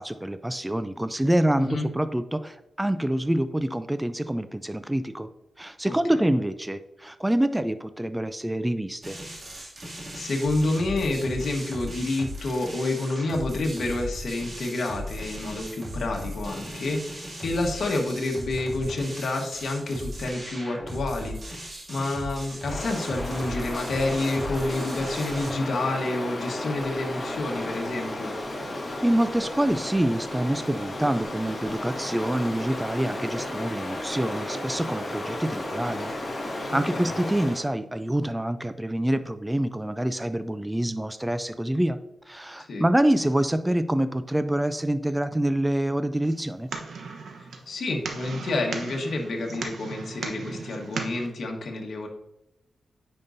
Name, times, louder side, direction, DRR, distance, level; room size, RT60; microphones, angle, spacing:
voice 1, 0.0-5.3 5.6-9.2 29.0-36.1 36.5-42.0 42.3-46.7, right 1 dB, 10° right, 11 dB, 0.4 m, -26 dB
voice 2, 5.9-6.2 10.1-21.6 21.9-28.3 36.9-37.1 42.7-42.8 47.7-52.1, left 2 dB, 70° left, 1 dB, 1.4 m, -29 dB
sound 1, 9.0-25.5, equal, 40° right, 2.4 m, -37 dB
Stream, 22.7-37.7, left 1 dB, 30° left, 2.0 m, -33 dB
sound 2, 46.2-51.3, right 4 dB, 80° right, 1.0 m, -37 dB
9.7 x 5.4 x 2.7 m, 0.88 s
cardioid pair, 70°, 0 cm